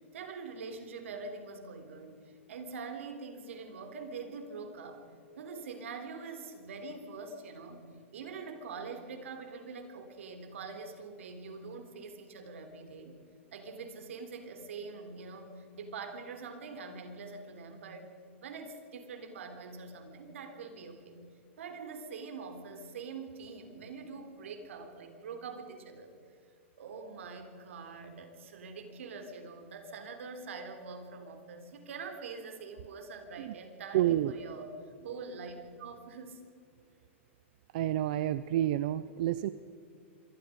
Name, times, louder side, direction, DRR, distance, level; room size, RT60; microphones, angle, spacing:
voice 1, 0.0-5.1 5.4-13.2 13.5-18.1 18.4-21.3 21.6-26.1 26.8-36.4, right 4 dB, 70° right, 7 dB, 3.6 m, -44 dB
voice 2, 33.9-34.3 37.7-39.5, right 13 dB, 40° right, 14 dB, 0.5 m, -29 dB
25.5 x 20.5 x 5.3 m, 2.5 s
supercardioid pair, 175°, 7 cm